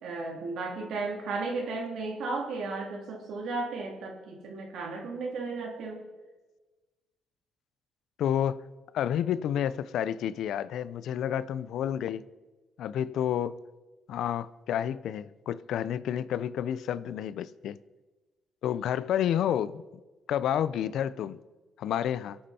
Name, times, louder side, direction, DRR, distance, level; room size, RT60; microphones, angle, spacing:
voice 1, 0.0-6.0, right 3 dB, 75° right, 3.0 m, -34 dB
voice 2, 8.2-8.6 8.9-12.2 12.8-13.6 14.1-17.8 18.6-19.8 20.3-21.4 21.8-22.4, left 10 dB, 75° left, 0.5 m, -30 dB
23.0 x 8.7 x 4.3 m
cardioid pair, 90°, 0 cm